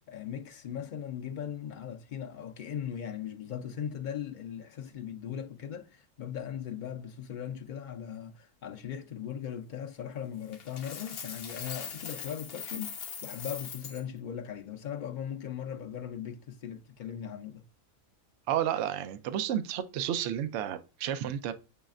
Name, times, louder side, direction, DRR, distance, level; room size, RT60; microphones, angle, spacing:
voice 1, 0.0-17.6, left 9 dB, 80° left, 0.4 m, -39 dB
Coin (dropping), 10.5-14.0, left 6 dB, 55° left, 0.8 m, -41 dB
voice 2, 18.5-21.5, right 10 dB, 65° right, 0.8 m, -31 dB
6.9 x 3.2 x 2.4 m
omnidirectional pair, 1.5 m